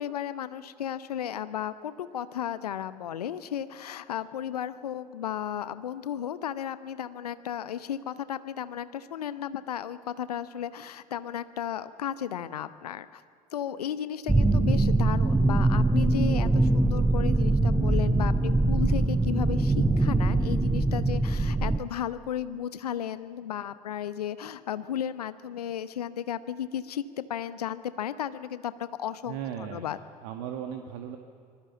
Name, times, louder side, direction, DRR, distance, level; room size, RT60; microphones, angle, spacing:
voice 1, 0.0-13.2 13.5-29.4 29.7-30.0, left 9 dB, 70° left, 14 dB, 1.0 m, -34 dB
sound 1, 14.3-21.8, right 2 dB, 5° right, 0.8 m, -23 dB
voice 2, 29.3-29.9 30.2-31.2, right 9 dB, 55° right, 5 dB, 1.7 m, -36 dB
26.5 x 21.5 x 7.1 m, 2.3 s
figure-of-eight pair, 70°, 20 cm